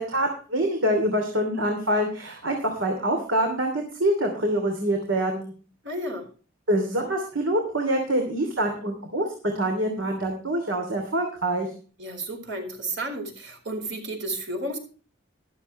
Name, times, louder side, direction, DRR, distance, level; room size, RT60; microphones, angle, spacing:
voice 1, 0.0-5.5 6.7-9.3 9.5-11.7, right 1 dB, 80° right, 3 dB, 2.9 m, -25 dB
voice 2, 5.8-6.3 12.0-14.8, right 1 dB, 65° right, 4 dB, 4.2 m, -32 dB
14.0 x 12.5 x 3.2 m, 0.38 s
head